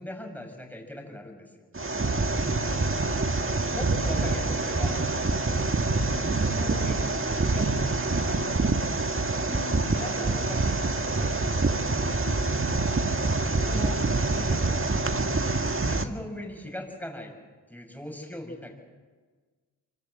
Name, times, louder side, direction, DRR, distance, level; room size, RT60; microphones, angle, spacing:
voice 1, 0.0-1.7 3.7-5.0 6.1-8.4 9.9-11.9 13.5-15.1 15.8-17.3 17.7-18.7, left 1 dB, 5° left, 2 dB, 7.0 m, -40 dB
sound 1, 1.7-16.0, right 3 dB, 30° right, 1.7 m, -26 dB
voice 2, 2.5-4.3 5.3-6.1 9.4-9.9 12.0-13.5, left 3 dB, 35° left, -1 dB, 3.0 m, -46 dB
24.5 x 16.0 x 8.0 m, 1.4 s
supercardioid pair, 45°, 44 cm